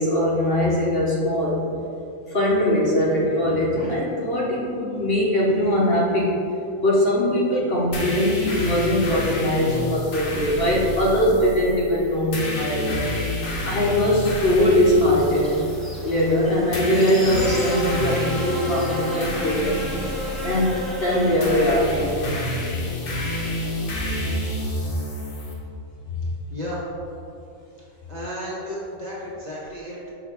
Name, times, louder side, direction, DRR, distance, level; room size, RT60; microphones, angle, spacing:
voice 1, 0.0-1.6 2.3-6.3 6.8-13.1 13.6-15.6 16.0-19.7 20.4-22.4 26.1-26.2, left 1 dB, 50° left, -5 dB, 1.1 m, -21 dB
sound 1, 7.9-25.5, left 1 dB, 75° left, 1.4 m, -29 dB
Buzz, 15.1-22.4, equal, ahead, 0.8 m, -32 dB
voice 2, 26.5-26.9 28.1-30.1, equal, 35° right, -7 dB, 1.2 m, -33 dB
6.0 x 3.5 x 4.6 m, 2.6 s
omnidirectional pair, 1.4 m